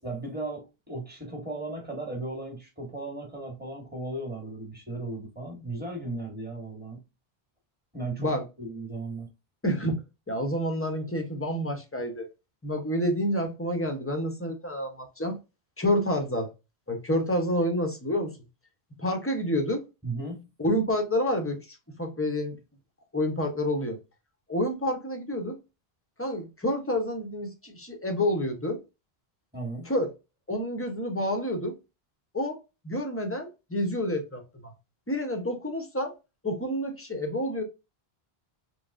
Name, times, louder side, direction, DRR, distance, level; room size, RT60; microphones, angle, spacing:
voice 1, 0.0-7.0 7.9-8.3 8.6-9.3 20.0-20.5 29.5-29.9, right 2 dB, 10° right, 1.2 m, -36 dB
voice 2, 9.6-10.0 10.3-12.3 12.6-15.4 15.8-16.5 16.9-18.4 19.0-19.8 20.6-22.6 23.1-24.0 24.5-25.6 26.2-28.8 29.8-30.1 30.5-31.7 32.3-32.6 32.8-34.7 35.1-36.1 36.4-37.6, equal, 15° left, 0.7 m, -28 dB
3.5 x 3.0 x 2.5 m
omnidirectional pair, 1.0 m